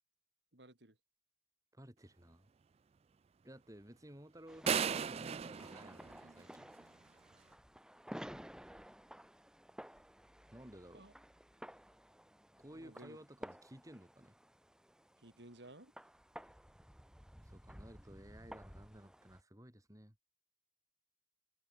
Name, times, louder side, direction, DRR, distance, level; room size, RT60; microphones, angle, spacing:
voice 1, 0.5-1.0 10.9-11.1 12.7-13.2 15.2-15.9, right 1 dB, 75° right, 4.3 m, -56 dB
voice 2, 1.7-2.5 3.4-6.7 10.5-11.1 12.6-14.3 17.4-20.2, right 1 dB, 20° right, 3.7 m, -55 dB
sound 1, 4.5-19.4, equal, 5° right, 2.4 m, -54 dB
sound 2, 4.7-6.8, right 7 dB, 35° right, 0.3 m, -36 dB
head